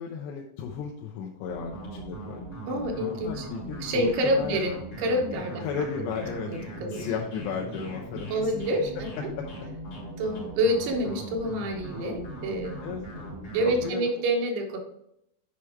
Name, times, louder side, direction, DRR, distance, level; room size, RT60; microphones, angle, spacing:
voice 1, 0.0-2.6 3.0-4.6 5.6-6.5 6.9-8.5 9.4-9.5 12.8-13.3 13.7-14.1, left 6 dB, 85° left, 0 dB, 2.9 m, -34 dB
sound 1, 1.5-13.9, right 1 dB, 35° left, 4.1 m, -39 dB
voice 2, 2.7-3.5 3.8-5.6 6.5-7.1 8.3-8.9 10.2-12.8 13.5-14.8, right 1 dB, 75° right, 2 dB, 3.2 m, -27 dB
8.4 x 5.0 x 4.5 m, 0.77 s
omnidirectional pair, 4.8 m